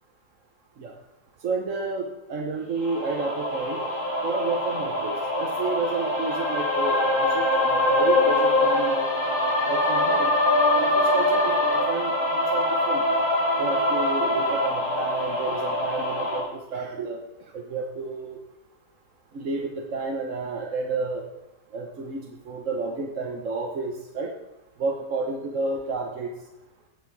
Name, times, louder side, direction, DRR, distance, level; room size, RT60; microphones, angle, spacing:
voice 1, 1.4-3.9 4.2-7.1 7.3-9.1 9.7-10.3 10.8-11.6 11.9-13.0 13.6-17.2 17.5-18.4 19.3-21.2 21.7-22.2 22.5-24.3 24.8-26.3, right 3 dB, 55° right, 1 dB, 1.3 m, -30 dB
sound 1, 2.8-16.4, left 1 dB, 20° right, 3.5 m, -23 dB
18.0 x 6.5 x 4.7 m, 0.97 s
omnidirectional pair, 1.8 m